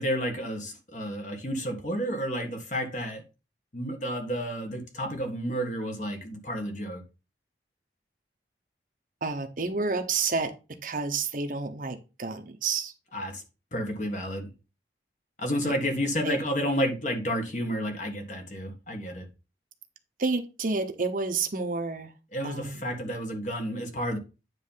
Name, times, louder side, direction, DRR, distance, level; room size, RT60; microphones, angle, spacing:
voice 1, 0.0-3.2 3.7-7.0 13.1-13.4 13.7-14.5 15.4-19.2 22.3-24.2, equal, 40° left, 1.5 m, -31 dB
voice 2, 9.2-10.5 10.8-12.9 15.6-15.7 16.2-16.4 20.2-22.1 22.4-22.9, right 4 dB, 45° right, 0.9 m, -30 dB
9.4 x 3.2 x 5.6 m
head